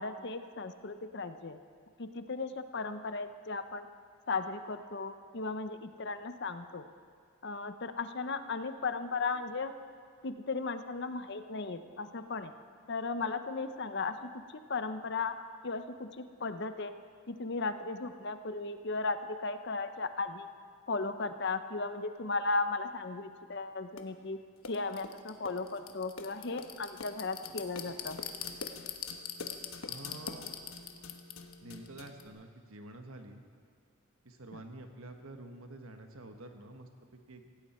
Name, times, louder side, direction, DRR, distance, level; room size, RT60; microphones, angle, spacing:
voice 1, 0.0-1.6 2.0-3.9 4.3-6.9 7.4-9.7 10.2-12.5 12.9-14.1 14.7-15.4 15.6-16.9 17.3-20.5 20.9-24.4 24.7-28.2 34.5-34.6, left 3 dB, 50° left, 10 dB, 0.7 m, -36 dB
sound 1, 24.0-24.1 24.6-32.3, left 6 dB, 75° left, 1.1 m, -42 dB
voice 2, 29.9-30.5 31.6-33.4 34.2-37.6, right 2 dB, 75° right, 5 dB, 1.4 m, -48 dB
17.0 x 16.5 x 4.4 m, 2.1 s
head